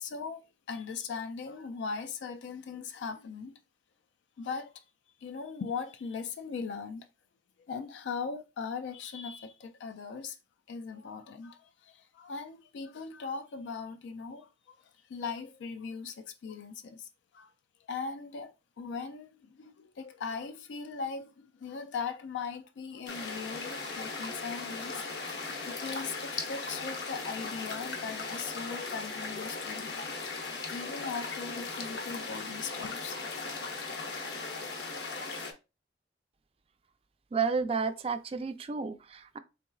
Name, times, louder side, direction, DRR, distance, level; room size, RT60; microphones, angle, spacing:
voice 1, 0.0-3.6 4.4-4.8 5.2-7.1 7.7-10.4 10.7-17.5 17.8-25.0 25.7-30.0 30.7-33.2, left 5 dB, 85° left, 0.3 m, -39 dB
sound 1, 23.1-35.5, left 3 dB, 70° left, 0.8 m, -38 dB
voice 2, 37.3-39.4, right 5 dB, 30° right, 0.4 m, -31 dB
4.1 x 3.8 x 2.3 m
head